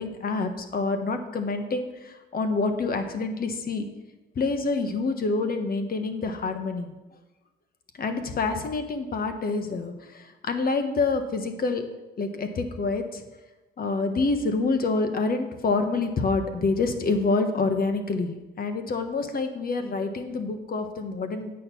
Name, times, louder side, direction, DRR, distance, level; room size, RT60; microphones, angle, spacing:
voice 1, 0.0-3.9 4.3-6.9 8.0-11.9 12.2-13.2 13.8-21.5, left 3 dB, 50° left, 7 dB, 1.3 m, -27 dB
9.0 x 6.6 x 5.8 m, 1.1 s
cardioid pair, 90°, 20 cm